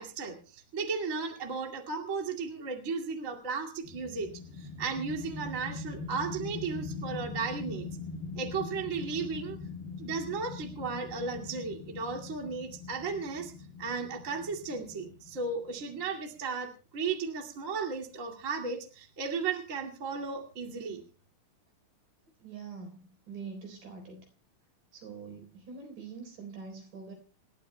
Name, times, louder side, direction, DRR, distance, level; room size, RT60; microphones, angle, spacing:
voice 1, 0.0-7.9 8.4-9.6 10.0-13.5 13.8-21.0, right 4 dB, 25° right, 1 dB, 1.9 m, -35 dB
sound 1, 3.8-16.1, left 3 dB, 80° left, 6.1 m, -42 dB
voice 2, 22.4-24.3 24.9-27.1, right 5 dB, 60° right, 3 dB, 5.5 m, -44 dB
28.0 x 12.5 x 2.2 m, 0.33 s
omnidirectional pair, 4.4 m